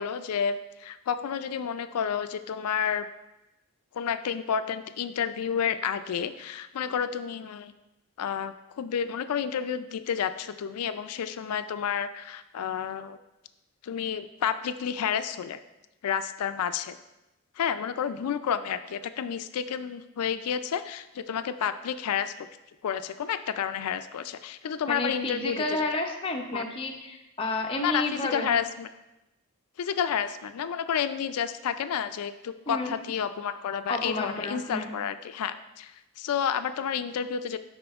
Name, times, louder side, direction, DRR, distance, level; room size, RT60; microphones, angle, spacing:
voice 1, 0.0-3.1 3.9-7.7 8.2-13.2 13.8-15.6 16.0-17.0 17.6-22.5 22.8-25.8 26.5-26.6 27.8-28.9 29.8-37.6, left 7 dB, 90° left, 11 dB, 0.4 m, -30 dB
voice 2, 24.9-28.6 32.7-32.9 33.9-34.9, left 2 dB, 25° left, 2 dB, 0.5 m, -31 dB
12.0 x 4.2 x 2.4 m, 0.96 s
head